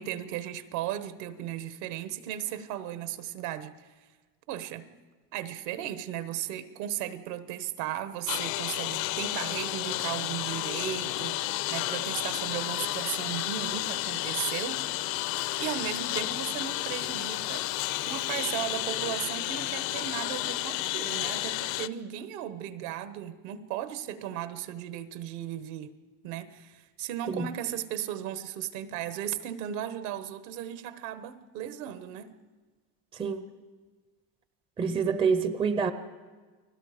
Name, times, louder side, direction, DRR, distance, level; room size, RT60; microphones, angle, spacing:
voice 1, 0.0-3.9 4.5-4.9 5.3-14.9 15.6-25.9 26.2-32.3, right 11 dB, 70° right, 1.4 m, -36 dB
Engine, 8.3-21.9, left 16 dB, 50° left, 0.6 m, -32 dB
voice 2, 33.1-33.4 34.8-35.9, right 5 dB, 10° right, 0.5 m, -27 dB
30.0 x 20.0 x 5.1 m
cardioid pair, 150°, 49 cm